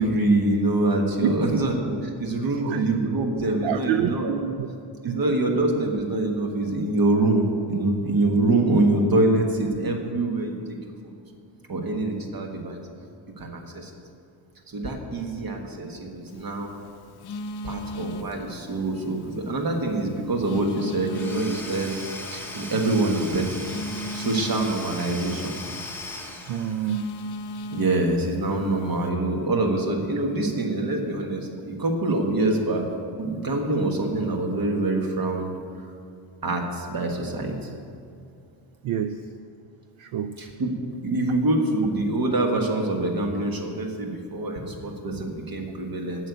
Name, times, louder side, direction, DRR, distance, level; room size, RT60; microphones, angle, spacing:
voice 1, 0.0-4.4 5.0-10.6 11.0-11.2 11.7-12.8 13.4-13.9 14.7-16.7 17.6-21.9 22.3-23.4 24.1-25.5 27.7-32.8 33.2-35.5 36.4-37.7 40.4-40.7 41.0-46.3, right 2 dB, 45° right, 2 dB, 1.5 m, -25 dB
voice 2, 1.2-1.6 2.6-2.8 3.6-4.7 5.1-5.2 26.5-27.2 38.8-39.2 40.0-40.4, right 9 dB, 70° right, 10 dB, 0.5 m, -27 dB
Telephone, 16.3-29.1, left 1 dB, 50° left, 0.6 m, -39 dB
Domestic sounds home sounds / Tools, 21.1-27.2, left 2 dB, 5° left, 0.8 m, -38 dB
8.5 x 6.6 x 8.3 m, 2.4 s
cardioid pair, 145°, 50 cm